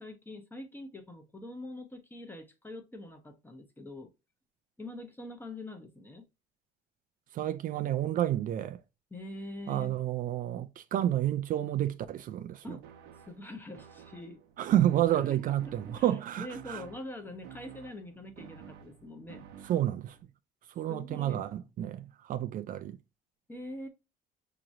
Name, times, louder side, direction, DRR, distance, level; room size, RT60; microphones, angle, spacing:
voice 1, 0.0-4.1 4.8-6.3 9.1-10.0 12.6-12.8 13.3-14.4 15.1-19.5 20.9-21.7 23.5-23.9, left 1 dB, 10° left, 1.0 m, -44 dB
voice 2, 7.3-8.8 9.7-12.8 14.6-16.8 19.6-20.2 20.8-23.0, right 12 dB, 55° right, 0.4 m, -30 dB
sound 1, 12.8-20.2, right 7 dB, 85° right, 0.8 m, -51 dB
6.0 x 3.0 x 2.6 m
cardioid pair, 110°, 17 cm